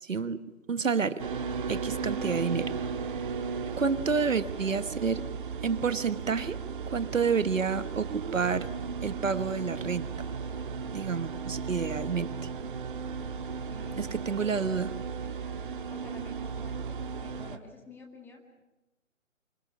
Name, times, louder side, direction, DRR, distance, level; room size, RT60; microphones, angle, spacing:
voice 1, 0.0-1.2 1.7-2.7 3.8-5.2 5.6-6.6 6.9-8.7 9.0-10.0 10.9-12.3 14.0-14.9, right 5 dB, 75° right, 12 dB, 1.4 m, -29 dB
sound 1, 1.2-17.6, right 5 dB, 40° right, 1.5 m, -35 dB
voice 2, 1.9-2.3 13.7-14.4 15.9-18.6, left 2 dB, 5° left, 2 dB, 1.9 m, -49 dB
25.0 x 20.5 x 8.6 m, 1.0 s
figure-of-eight pair, 150°, 40 cm